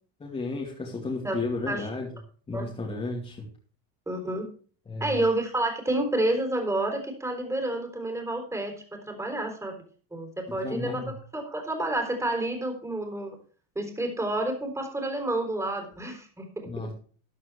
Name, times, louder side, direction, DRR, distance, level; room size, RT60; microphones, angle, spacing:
voice 1, 0.2-2.1 2.5-3.5 4.9-5.2 10.5-11.1 16.7-16.9, left 3 dB, 15° left, -2 dB, 2.6 m, -33 dB
voice 2, 4.1-4.4 5.0-9.7 10.1-13.4 13.8-16.9, right 1 dB, 10° right, 4 dB, 3.8 m, -29 dB
13.5 x 10.5 x 3.4 m, 0.42 s
supercardioid pair, 135°, 36 cm